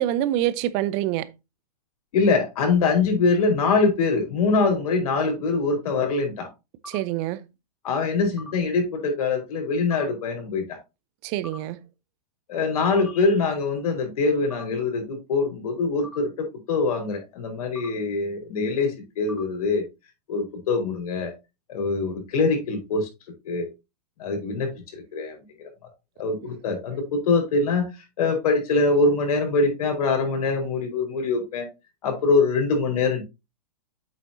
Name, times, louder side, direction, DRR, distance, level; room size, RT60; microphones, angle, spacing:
voice 1, 0.0-1.3 6.9-7.4 11.2-11.8, right 13 dB, 30° right, 0.7 m, -25 dB
voice 2, 2.1-6.5 7.8-10.8 12.5-19.8 20.3-21.3 21.7-23.1 23.4-23.7 24.2-25.7 26.2-27.9 28.2-31.7 32.0-33.2, left 4 dB, 65° left, 4.4 m, -23 dB
sound 1, 6.8-7.0 8.4-8.5 9.9-10.1 11.4-11.6 13.0-13.1 14.5-14.6 16.0-16.2 17.8-17.9 19.3-19.4, left 3 dB, ahead, 1.3 m, -40 dB
8.3 x 6.6 x 2.7 m
hypercardioid pair, 150°, 20 cm